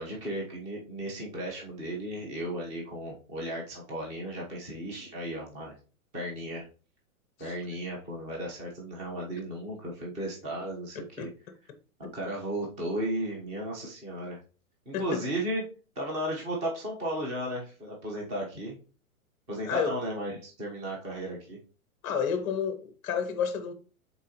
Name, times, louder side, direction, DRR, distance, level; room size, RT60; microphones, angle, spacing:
voice 1, 0.0-5.7 6.1-6.7 7.4-11.3 12.0-14.4 14.8-15.6 15.9-18.8 19.5-21.6, right 1 dB, 15° right, 1.0 m, -35 dB
voice 2, 10.9-11.3 12.0-12.1 14.9-15.2 19.7-20.0 22.0-23.7, left 7 dB, 15° left, 0.8 m, -31 dB
9.1 x 4.0 x 3.0 m
hypercardioid pair, 165°, 43 cm